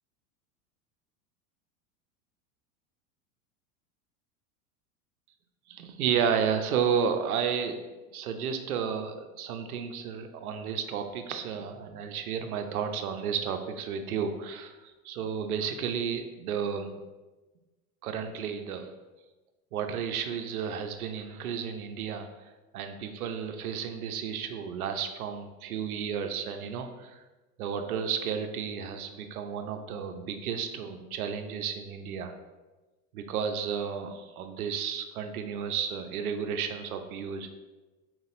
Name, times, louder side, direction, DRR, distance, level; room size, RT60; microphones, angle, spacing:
voice 1, 5.7-7.8 8.1-14.8 15.0-17.0 18.0-18.9 19.7-22.3 22.7-27.2 27.6-32.3 33.1-37.5, right 7 dB, 85° right, 7 dB, 0.6 m, -32 dB
4.4 x 4.0 x 2.5 m, 1.2 s
hypercardioid pair, 95°, 43 cm